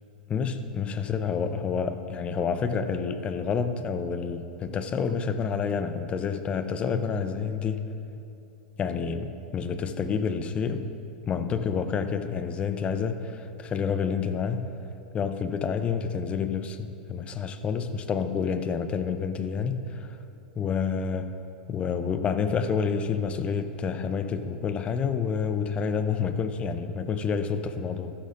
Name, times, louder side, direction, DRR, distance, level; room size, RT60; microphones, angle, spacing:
voice 1, 0.3-7.9 8.8-10.9 11.3-14.7 15.1-20.2 20.6-21.4 21.7-28.1, left 6 dB, 25° left, 10 dB, 0.6 m, -29 dB
14.0 x 11.5 x 2.5 m, 2.8 s
hypercardioid pair, 125°, 5 cm